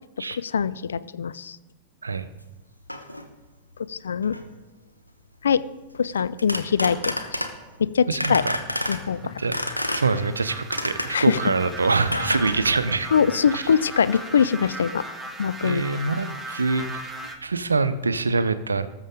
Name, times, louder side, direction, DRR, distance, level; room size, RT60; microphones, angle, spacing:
voice 1, 0.4-1.6 3.9-4.4 5.4-5.6 6.0-7.4 7.8-8.4 8.9-9.4 11.1-11.4 13.1-15.0 15.4-15.8, left 7 dB, 70° left, 16 dB, 0.4 m, -23 dB
sound 1, 2.3-2.4 2.9-3.2 4.2-4.6 6.1-7.8 8.2-9.0 9.5-10.4 10.7-11.3 12.1-13.4 13.7-14.2, left 1 dB, 90° left, 0.9 m, -30 dB
voice 2, 8.1-8.6 9.4-9.5 9.9-13.1 13.5-13.6 15.6-18.9, right 4 dB, 75° right, 13 dB, 0.6 m, -25 dB
sound 2, 9.0-17.4, right 1 dB, ahead, 1.4 m, -38 dB
19.0 x 7.3 x 3.8 m, 1.1 s
figure-of-eight pair, 90°, 0 cm